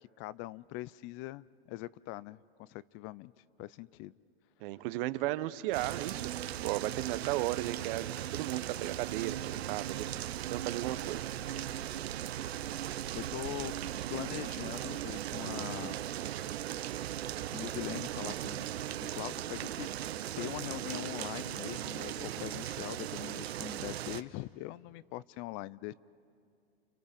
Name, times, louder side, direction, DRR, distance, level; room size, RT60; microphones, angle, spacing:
voice 1, 0.0-3.3 3.6-4.1 12.8-13.7 14.1-16.0 17.5-18.7 19.0-25.9, left 17 dB, 40° left, 20 dB, 0.5 m, -42 dB
voice 2, 4.6-6.3 6.6-11.3, right 16 dB, 60° right, 14 dB, 1.0 m, -35 dB
sound 1, 5.7-24.2, right 12 dB, 85° right, 0.8 m, -38 dB
29.0 x 29.0 x 5.2 m, 2.4 s
hypercardioid pair, 115°, 31 cm